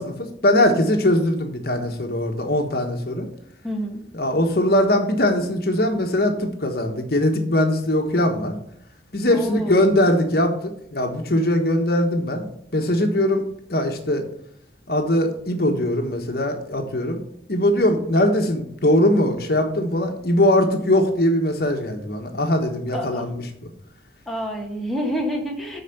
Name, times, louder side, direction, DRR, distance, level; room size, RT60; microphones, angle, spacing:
voice 1, 0.0-3.3 4.1-8.6 9.1-12.4 12.7-13.4 13.7-14.2 14.9-17.2 17.5-23.4, left 1 dB, 60° left, 4 dB, 1.3 m, -21 dB
voice 2, 3.6-4.0 9.3-9.8 22.9-23.3 24.3-25.8, equal, ahead, -1 dB, 1.6 m, -28 dB
8.3 x 4.9 x 7.0 m, 0.71 s
head